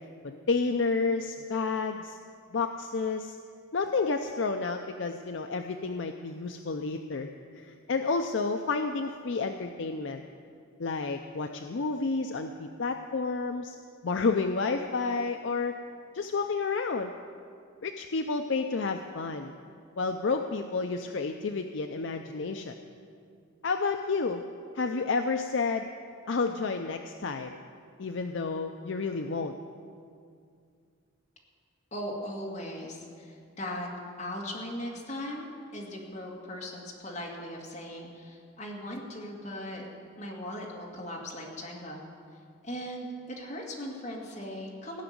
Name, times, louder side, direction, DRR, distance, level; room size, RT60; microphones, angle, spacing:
voice 1, 0.2-2.2 2.5-3.4 3.7-10.2 10.8-13.8 14.0-15.8 16.1-17.1 17.8-19.6 20.0-22.8 23.6-24.4 24.7-25.9 26.3-27.6 28.0-29.5, left 4 dB, 60° left, 6 dB, 0.5 m, -30 dB
voice 2, 31.9-33.9 34.2-39.9 40.2-42.0 42.6-45.0, equal, 35° left, -3 dB, 2.2 m, -38 dB
17.0 x 6.0 x 9.4 m, 2.3 s
head